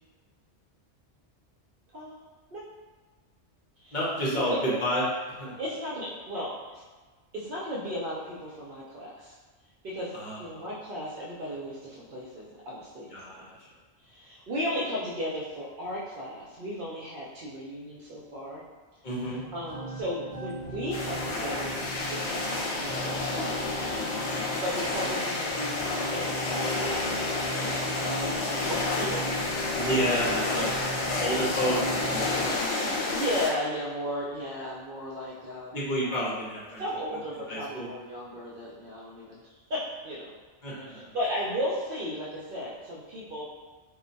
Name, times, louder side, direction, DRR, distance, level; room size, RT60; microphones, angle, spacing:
voice 1, 1.9-2.2 2.5-2.6 3.8-4.0 4.3-4.8 5.6-6.8 7.3-9.4 9.8-10.1 10.4-13.1 14.0-18.6 19.5-29.4 30.6-30.7 33.1-35.9 36.8-40.3 40.9-43.4, equal, 60° right, -6 dB, 0.6 m, -35 dB
voice 2, 3.9-5.0 5.4-5.5 10.1-10.7 13.1-13.5 19.0-19.4 29.7-30.8 31.1-32.9 35.7-36.8 37.5-37.9 40.6-41.2, equal, 50° left, -7 dB, 0.8 m, -30 dB
sound 1, 19.2-32.5, right 2 dB, 30° right, 1.1 m, -38 dB
sound 2, 20.9-33.5, left 3 dB, 80° left, 0.9 m, -30 dB
2.2 x 2.2 x 3.8 m, 1.4 s
omnidirectional pair, 1.2 m